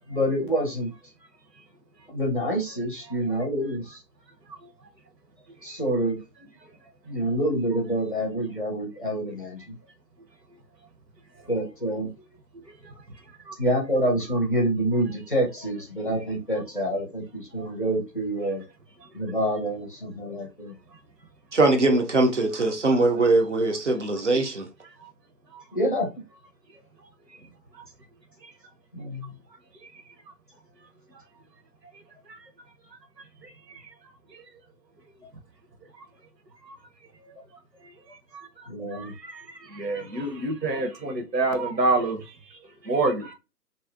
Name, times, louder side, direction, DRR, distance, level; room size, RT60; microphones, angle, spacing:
voice 1, 0.1-0.9 2.1-4.0 5.6-6.2 7.1-9.7 11.5-12.1 13.6-18.6 19.1-20.7 25.7-26.1 28.9-29.3 38.7-39.1, right 1 dB, 35° left, 0.6 m, -27 dB
voice 2, 12.5-12.9 13.5-13.6 17.6-17.7 23.9-24.0 25.0-25.1 25.5-25.6 27.3-27.4 27.7-27.8 32.3-32.4 33.4-33.8 34.3-34.4 36.6-36.8 38.3-42.3 42.8-43.3, right 2 dB, 80° right, 0.9 m, -29 dB
voice 3, 21.5-24.7, right 2 dB, 50° right, 0.5 m, -21 dB
2.5 x 2.0 x 2.4 m
figure-of-eight pair, 145°, 49 cm